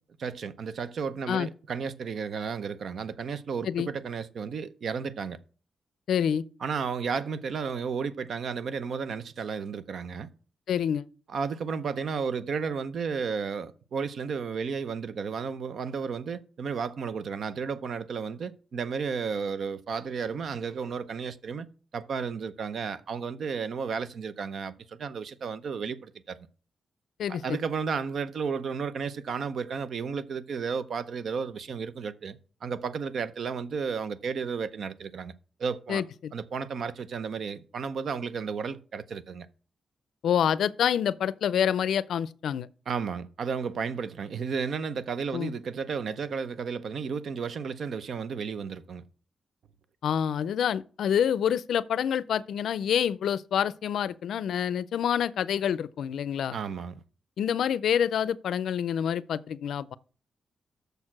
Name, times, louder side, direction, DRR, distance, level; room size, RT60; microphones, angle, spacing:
voice 1, 0.2-5.4 6.6-10.3 11.3-21.7 21.9-26.5 27.3-35.3 35.6-36.0 36.3-39.5 42.9-49.0 56.5-57.0, right 5 dB, 60° right, 0.6 m, -33 dB
voice 2, 6.1-6.4 10.7-11.0 27.2-27.6 35.9-36.3 40.2-42.7 45.3-45.5 50.0-56.5 57.4-60.0, left 9 dB, 85° left, 0.4 m, -27 dB
6.7 x 6.5 x 6.0 m
wide cardioid pair, 145°, 0 cm